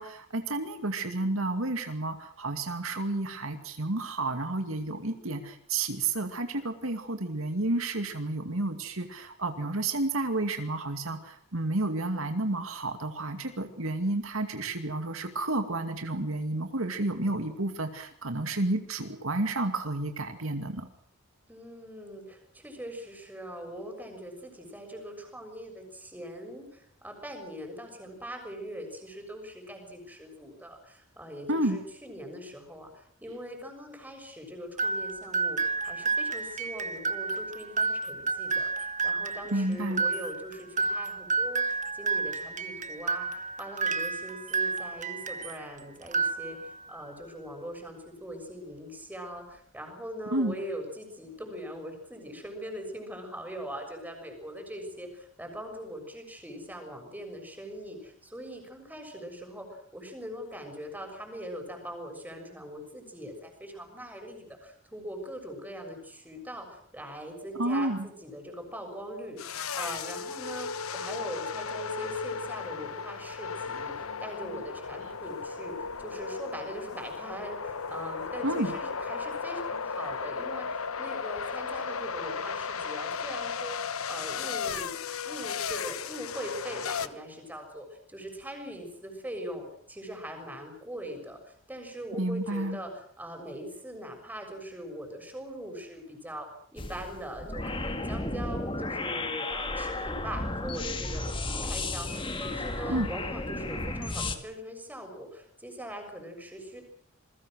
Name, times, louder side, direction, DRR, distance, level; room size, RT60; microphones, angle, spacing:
voice 1, 0.0-20.9 31.5-31.8 39.5-40.0 50.3-50.5 67.6-68.1 78.4-78.7 92.2-92.8 102.9-103.1, right 2 dB, 75° right, 6 dB, 2.4 m, -31 dB
voice 2, 21.5-85.0 85.2-92.9 93.2-101.3 101.6-106.8, equal, 10° right, 3 dB, 6.7 m, -41 dB
sound 1, 34.8-45.6 46.0-46.9, right 4 dB, 35° right, 1.5 m, -31 dB
sound 2, 69.4-87.1, left 5 dB, 85° left, 1.2 m, -35 dB
sound 3, 96.8-104.4, left 2 dB, 25° left, 2.0 m, -33 dB
28.0 x 21.5 x 6.5 m, 0.64 s
head